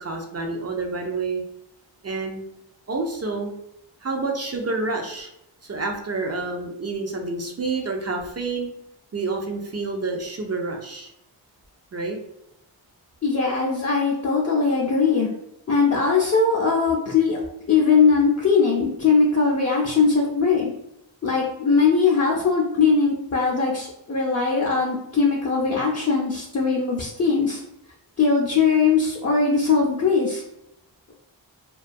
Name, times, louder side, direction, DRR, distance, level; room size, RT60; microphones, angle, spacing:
voice 1, 0.0-1.4 2.0-2.4 2.9-3.5 4.0-5.3 5.6-8.7 9.1-11.1 11.9-12.2, right 3 dB, 35° right, 2 dB, 0.5 m, -28 dB
voice 2, 13.2-15.3 15.7-17.4 17.7-20.7 21.2-27.6 28.2-30.4, left 5 dB, 35° left, -3 dB, 0.5 m, -20 dB
2.3 x 2.2 x 2.5 m, 0.80 s
cardioid pair, 50°, 45 cm